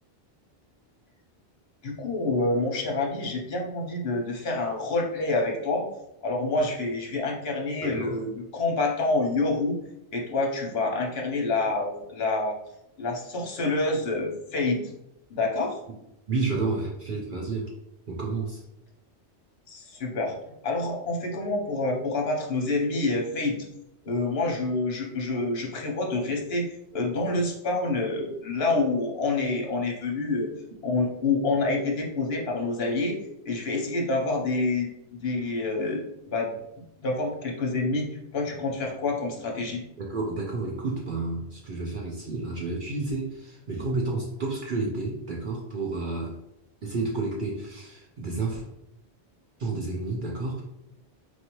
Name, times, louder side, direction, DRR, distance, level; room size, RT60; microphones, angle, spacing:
voice 1, 1.8-5.9 6.2-9.8 10.1-12.5 13.0-14.9 15.3-15.8 19.7-20.3 20.6-23.6 24.0-30.5 30.8-33.2 33.4-36.6 37.0-39.8, left 2 dB, 65° left, 1 dB, 1.1 m, -27 dB
voice 2, 7.8-8.2 16.3-17.7 18.1-18.6 40.0-46.3 46.8-48.6 49.6-50.6, right 3 dB, 55° right, -1 dB, 0.7 m, -30 dB
4.4 x 2.7 x 3.0 m, 0.82 s
omnidirectional pair, 1.1 m